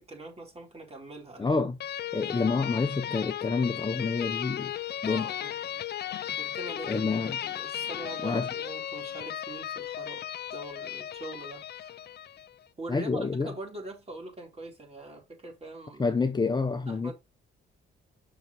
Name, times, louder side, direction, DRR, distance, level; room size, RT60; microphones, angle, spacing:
voice 1, 0.0-1.6 5.0-5.5 6.4-10.2 10.5-11.9 12.8-16.1 16.9-17.1, right 2 dB, 30° right, 4.0 m, -43 dB
voice 2, 1.4-1.7 2.1-4.7 5.0-5.3 6.9-7.4 8.2-8.5 12.9-13.5 16.0-17.1, left 4 dB, 20° left, 0.9 m, -28 dB
sound 1, 1.8-12.5, left 10 dB, 55° left, 0.6 m, -36 dB
6.4 x 6.0 x 4.1 m
cardioid pair, 90°, 20 cm